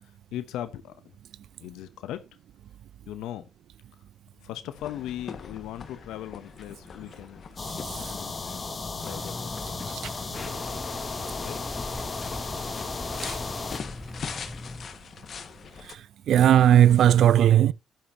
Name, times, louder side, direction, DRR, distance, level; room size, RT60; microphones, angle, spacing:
voice 1, 0.0-0.9 1.6-2.2 3.1-3.5 4.4-7.4 8.1-9.9 10.2-10.8 11.4-11.6, left 12 dB, 90° left, 0.8 m, -39 dB
sound 1, 4.8-15.9, left 6 dB, 50° left, 1.7 m, -43 dB
sound 2, 7.6-13.8, left 4 dB, 30° left, 2.7 m, -34 dB
sound 3, 9.0-14.9, left 1 dB, 10° left, 0.8 m, -40 dB
voice 2, 16.3-17.7, right 11 dB, 70° right, 0.5 m, -17 dB
12.5 x 10.0 x 2.8 m
cardioid pair, 90°, 0 cm